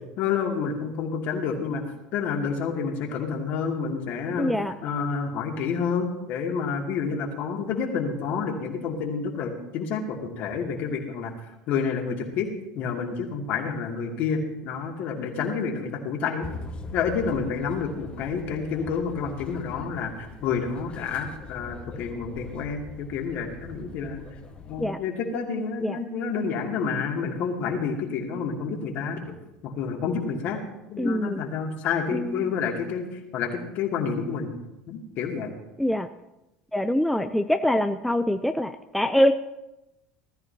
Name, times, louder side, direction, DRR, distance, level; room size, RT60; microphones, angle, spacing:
voice 1, 0.2-1.8 2.1-4.5 4.8-11.3 11.7-16.5 16.9-24.2 24.7-29.3 29.6-30.6 30.9-33.1 33.3-34.5 34.9-35.5, left 5 dB, 55° left, 0 dB, 2.7 m, -29 dB
voice 2, 4.4-4.7 24.8-25.0 25.8-26.0 31.0-31.4 32.1-32.5 35.8-36.1 36.7-39.3, left 1 dB, ahead, 8 dB, 0.6 m, -24 dB
sound 1, 16.4-24.9, left 3 dB, 30° left, 1.6 m, -42 dB
19.0 x 13.5 x 2.9 m, 0.94 s
hypercardioid pair, 70°, 4 cm